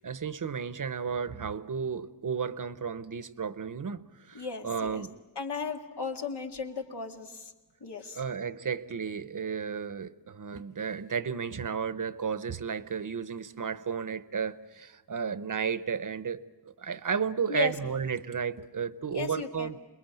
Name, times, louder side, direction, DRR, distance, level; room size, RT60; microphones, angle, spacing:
voice 1, 0.0-5.1 8.1-19.8, right 6 dB, 50° right, 15 dB, 0.8 m, -33 dB
voice 2, 4.3-5.1 5.4-7.5 7.8-8.2 17.5-17.7 19.1-19.7, left 5 dB, 85° left, 3 dB, 2.1 m, -36 dB
27.5 x 21.0 x 9.0 m, 1.1 s
wide cardioid pair, 105°, 40 cm